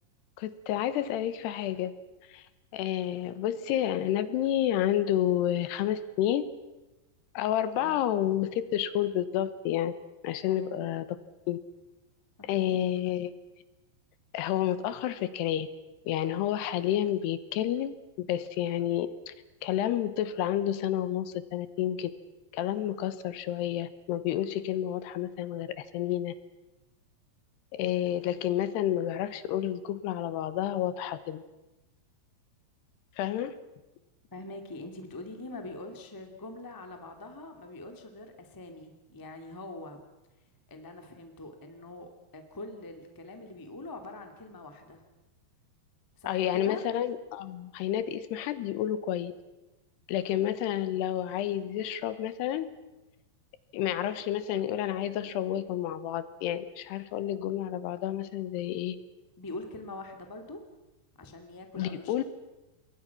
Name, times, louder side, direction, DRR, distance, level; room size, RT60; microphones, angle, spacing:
voice 1, 0.4-1.9 2.3-2.5 2.7-6.5 7.3-9.9 10.2-11.1 11.5-11.6 12.4-13.3 14.3-15.7 16.1-19.3 19.6-22.1 22.5-26.3 27.7-31.4 33.2-33.6 46.3-49.3 50.1-52.7 53.7-59.0 61.8-62.2, left 11 dB, 80° left, 14 dB, 3.0 m, -30 dB
voice 2, 34.3-40.0 40.7-45.0 46.2-46.8 59.4-60.6 61.2-62.2, left 2 dB, 10° left, 5 dB, 0.9 m, -43 dB
27.5 x 22.0 x 5.9 m, 1.0 s
omnidirectional pair, 4.9 m